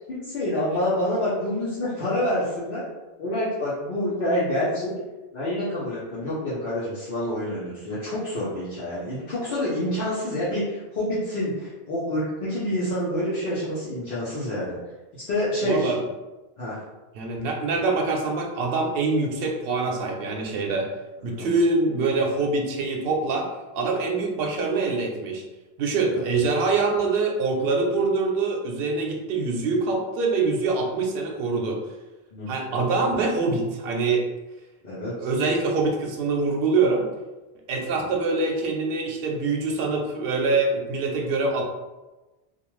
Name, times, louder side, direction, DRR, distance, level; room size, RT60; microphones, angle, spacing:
voice 1, 0.1-2.8 3.2-4.9 5.3-14.8 15.3-15.9 16.6-16.8 21.2-21.5 26.1-26.2 32.3-32.5 34.8-35.2 38.0-38.1, left 1 dB, 65° left, -9 dB, 0.9 m, -27 dB
voice 2, 15.6-16.0 17.1-20.9 21.2-23.5 23.7-25.4 25.8-31.8 32.5-34.3 35.2-37.0 37.7-41.6, right 3 dB, 70° right, 0 dB, 0.8 m, -24 dB
2.5 x 2.2 x 3.0 m, 1.1 s
omnidirectional pair, 1.0 m